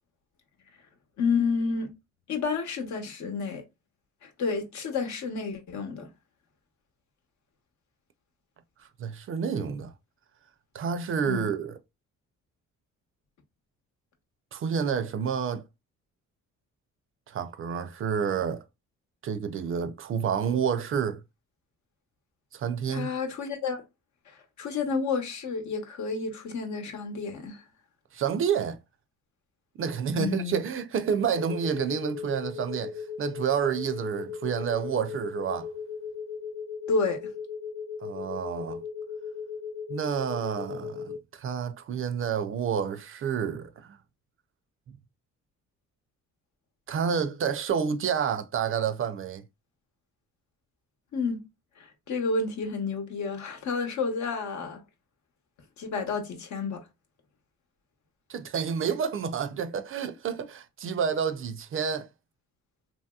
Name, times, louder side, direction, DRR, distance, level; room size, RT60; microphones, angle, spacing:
voice 1, 1.2-1.9 2.3-3.6 4.2-6.1 11.3-11.5 22.9-23.8 24.3-27.6 30.1-30.6 36.9-37.2 51.1-51.4 51.8-54.8 55.8-56.8, left 4 dB, 65° left, 0.9 m, -30 dB
voice 2, 9.0-9.9 10.7-11.8 14.5-15.6 17.3-18.6 19.2-21.2 22.5-23.1 28.1-28.8 29.8-35.7 38.0-38.8 39.9-44.0 46.9-49.4 58.3-62.1, right 7 dB, 45° right, 0.4 m, -29 dB
sound 1, 31.3-41.2, left 6 dB, 25° left, 0.9 m, -37 dB
2.9 x 2.8 x 2.3 m
cardioid pair, 90°, 30 cm